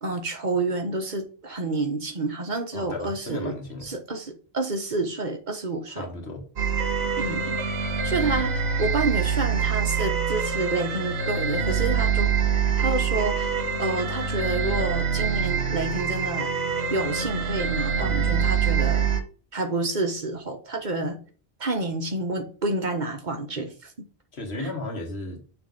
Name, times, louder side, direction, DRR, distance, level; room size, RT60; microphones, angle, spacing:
voice 1, 0.0-3.5 3.8-6.1 7.2-7.6 8.0-12.3 12.8-16.5 16.9-19.1 19.5-21.2 21.6-23.7 24.6-24.7, right 3 dB, 50° right, 1.2 m, -29 dB
voice 2, 2.7-3.9 5.9-6.5 24.3-25.4, left 2 dB, 85° left, 1.9 m, -35 dB
sound 1, 6.6-19.2, right 6 dB, 85° right, 1.2 m, -25 dB
6.5 x 3.2 x 5.2 m
omnidirectional pair, 1.0 m